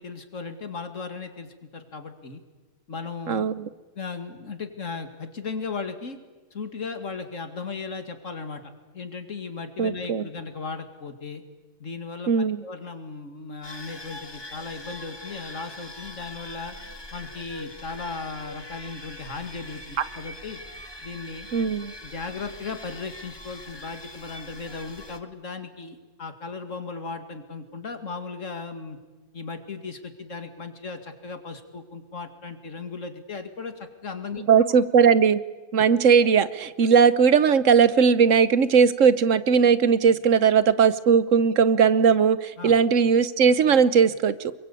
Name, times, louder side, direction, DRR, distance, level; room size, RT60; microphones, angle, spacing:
voice 1, 0.0-2.4 2.9-3.5 4.0-6.2 6.5-8.6 8.9-11.4 11.8-16.8 17.1-19.8 20.2-20.6 21.0-21.5 22.0-29.0 29.3-34.4 42.6-42.7, left 4 dB, 85° left, 7 dB, 2.7 m, -36 dB
voice 2, 3.3-3.7 9.8-10.2 12.3-12.6 21.5-21.9 34.5-35.4 35.7-44.5, right 6 dB, 85° right, 15 dB, 1.4 m, -19 dB
sound 1, 13.6-25.2, left 1 dB, 20° left, 1.5 m, -42 dB
27.0 x 23.0 x 8.5 m, 1.2 s
omnidirectional pair, 1.3 m